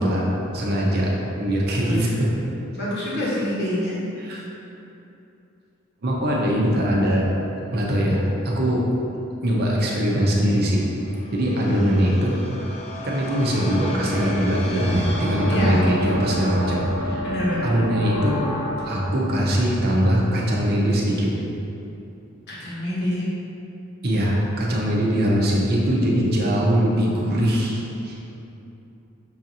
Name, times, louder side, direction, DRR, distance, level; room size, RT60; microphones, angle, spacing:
voice 1, 0.0-2.3 4.2-4.4 6.0-7.3 7.7-8.8 9.4-10.8 11.3-12.7 13.0-17.3 17.6-21.3 24.0-28.2, equal, 50° right, -3 dB, 0.6 m, -22 dB
voice 2, 2.7-4.0 11.6-11.8 15.5-15.8 17.2-17.7 22.5-23.3, left 1 dB, 50° left, -8 dB, 1.1 m, -26 dB
sound 1, 10.5-20.8, left 1 dB, 30° left, 0.4 m, -32 dB
5.6 x 2.5 x 2.8 m, 2.8 s
head